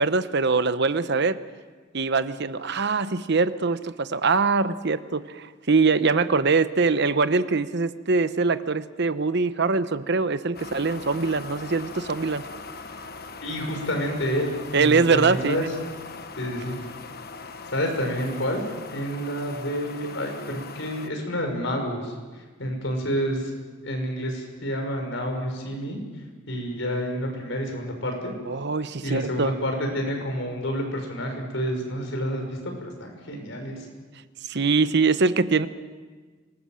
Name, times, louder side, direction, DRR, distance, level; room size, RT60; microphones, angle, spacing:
voice 1, 0.0-1.4 1.9-12.5 14.7-15.7 28.5-29.5 34.4-35.7, right 4 dB, 60° right, 12 dB, 0.9 m, -23 dB
sound 1, 10.5-21.1, left 4 dB, 50° left, 1.3 m, -40 dB
voice 2, 13.4-15.7 16.4-16.8 17.7-23.5 23.8-26.0 26.5-28.3 29.0-33.9, equal, 75° left, 2 dB, 6.2 m, -29 dB
26.0 x 20.0 x 7.6 m, 1.4 s
head